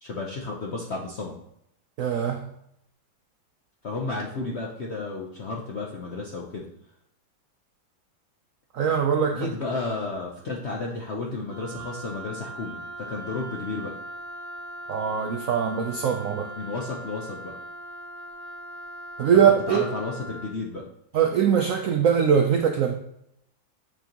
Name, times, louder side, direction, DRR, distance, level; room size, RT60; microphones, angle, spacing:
voice 1, 0.0-1.3 3.8-6.7 9.3-13.9 16.6-17.6 19.7-20.9, left 3 dB, 65° left, -1 dB, 0.6 m, -32 dB
voice 2, 2.0-2.5 8.7-9.5 14.9-16.5 19.2-19.8 21.1-22.9, right 7 dB, 85° right, 4 dB, 0.7 m, -22 dB
Wind instrument woodwind instrument, 11.4-20.5, right 1 dB, 60° right, 1.6 m, -40 dB
9.2 x 4.5 x 2.9 m, 0.75 s
omnidirectional pair, 2.1 m